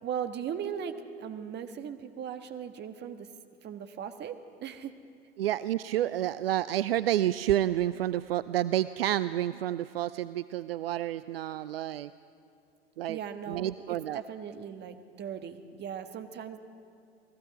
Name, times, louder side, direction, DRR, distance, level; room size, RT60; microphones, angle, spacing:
voice 1, 0.0-3.3 3.6-4.9 13.1-16.6, right 8 dB, 35° right, 8 dB, 1.5 m, -38 dB
voice 2, 5.4-12.1 13.0-13.2 13.5-14.2, right 13 dB, 70° right, 15 dB, 0.5 m, -29 dB
29.0 x 19.5 x 4.9 m, 2.4 s
figure-of-eight pair, 80°, 31 cm